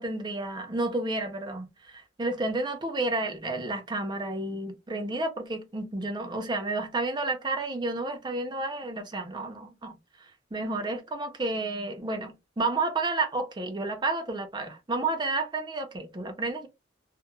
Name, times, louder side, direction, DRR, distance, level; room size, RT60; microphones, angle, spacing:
voice 1, 0.0-10.0 10.5-16.7, right 2 dB, 25° right, 0.5 m, -31 dB
2.9 x 2.0 x 2.2 m
head